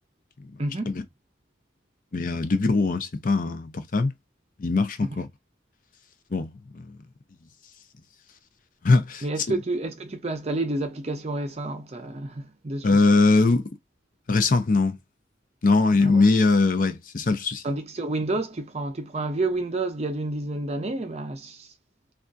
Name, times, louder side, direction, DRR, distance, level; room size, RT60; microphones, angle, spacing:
voice 1, 0.6-1.0 5.0-5.2 9.2-13.0 15.9-16.3 17.6-21.7, right 2 dB, 35° right, 0.5 m, -30 dB
voice 2, 2.1-4.1 4.6-5.3 6.3-6.9 8.8-9.2 12.8-13.6 14.3-15.0 15.6-17.6, left 3 dB, 45° left, 0.5 m, -21 dB
3.5 x 2.3 x 2.5 m
head